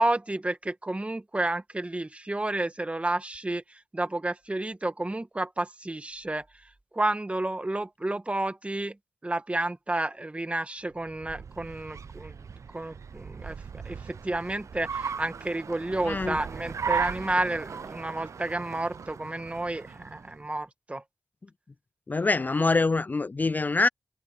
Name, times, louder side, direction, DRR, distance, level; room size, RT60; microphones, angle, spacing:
voice 1, 0.0-9.0 9.2-12.4 12.7-21.0, right 2 dB, 20° right, 1.7 m, -31 dB
Car, 10.9-20.5, right 6 dB, 65° right, 0.8 m, -37 dB
voice 2, 16.1-16.4 22.1-23.9, left 3 dB, 30° left, 0.4 m, -24 dB
cardioid pair, 55°, 6 cm